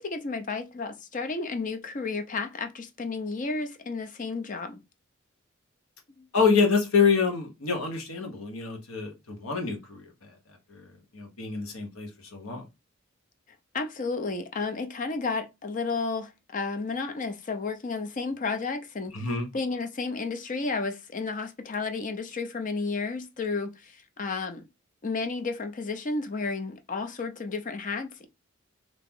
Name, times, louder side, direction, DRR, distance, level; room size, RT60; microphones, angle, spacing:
voice 1, 0.0-4.8 6.2-6.3 13.7-19.3 19.5-24.6 25.0-28.3, left 4 dB, 40° left, 0.5 m, -32 dB
voice 2, 6.3-10.1 10.7-10.8 11.1-12.6 19.1-19.5, left 5 dB, 85° left, 1.2 m, -26 dB
2.9 x 2.9 x 3.6 m
head